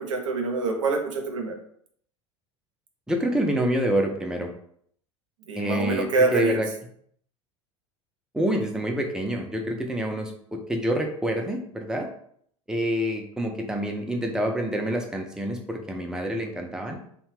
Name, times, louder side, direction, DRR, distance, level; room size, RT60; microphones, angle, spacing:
voice 1, 0.0-1.5 5.5-6.6, right 3 dB, 85° right, 2 dB, 0.6 m, -25 dB
voice 2, 3.1-4.5 5.5-6.7 8.3-12.1 12.7-17.0, equal, 5° right, 2 dB, 0.5 m, -27 dB
2.7 x 2.2 x 3.1 m, 0.64 s
hypercardioid pair, 80°, 16 cm